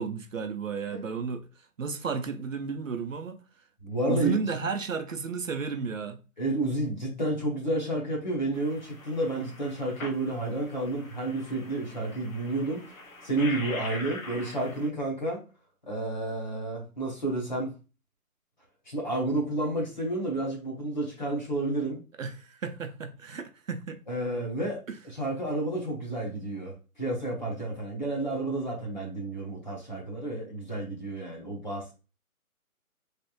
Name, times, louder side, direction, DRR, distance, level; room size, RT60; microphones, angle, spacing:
voice 1, 0.0-1.5 1.8-3.4 4.1-6.2 22.2-24.0 24.9-25.0, right 5 dB, 60° right, 0.6 m, -33 dB
voice 2, 3.8-4.6 6.4-12.8 13.2-15.4 15.9-17.7 18.9-22.0 24.1-31.9, right 2 dB, 30° left, 1.0 m, -31 dB
sound 1, 8.5-14.9, left 2 dB, 65° left, 0.9 m, -43 dB
3.2 x 2.7 x 2.9 m
hypercardioid pair, 175°, 45 cm